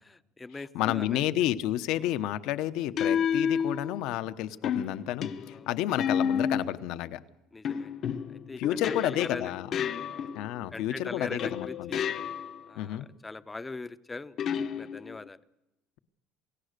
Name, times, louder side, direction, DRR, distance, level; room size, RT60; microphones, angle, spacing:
voice 1, 0.0-1.3 1.9-2.2 5.4-6.0 7.5-8.2 8.5-9.6 10.1-10.3 10.7-12.1 12.7-14.4 14.6-15.4, left 3 dB, 15° left, 13 dB, 0.7 m, -41 dB
voice 2, 0.7-7.2 8.6-9.7 10.3-11.9 12.8-13.1, left 13 dB, 70° left, 11 dB, 1.0 m, -30 dB
sound 1, 0.9-1.2 3.0-4.2 4.6-6.8 7.6-10.6 11.4-12.7 14.4-15.3, left 7 dB, 45° left, 0.9 m, -31 dB
28.0 x 17.0 x 6.7 m, 0.97 s
cardioid pair, 130°, 0 cm